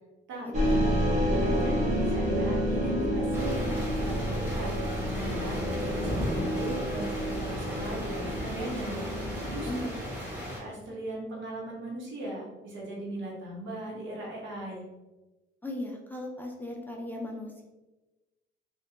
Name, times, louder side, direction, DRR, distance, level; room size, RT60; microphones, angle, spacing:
voice 1, 0.4-0.8 9.7-10.0 15.6-17.7, left 1 dB, 10° left, 0 dB, 0.4 m, -37 dB
sound 1, 0.5-10.3, equal, 40° right, 0.7 m, -29 dB
voice 2, 1.4-4.7 5.1-9.0 9.5-9.7 10.5-14.8, right 1 dB, 75° right, -3 dB, 0.9 m, -38 dB
sound 2, 3.3-10.6, equal, 10° right, 1.1 m, -37 dB
2.6 x 2.2 x 2.4 m, 1.1 s
cardioid pair, 90°, 20 cm